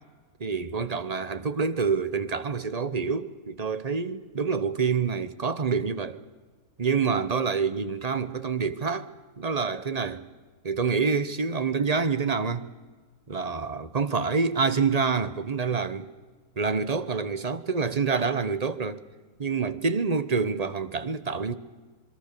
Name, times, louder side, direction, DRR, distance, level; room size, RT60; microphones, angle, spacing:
voice 1, 0.4-6.2 6.8-9.1 9.4-10.3 10.6-12.7 13.3-16.1 16.6-19.0 19.4-21.5, right 5 dB, 30° right, 0.9 m, -27 dB
26.5 x 22.5 x 6.7 m
omnidirectional pair, 1.6 m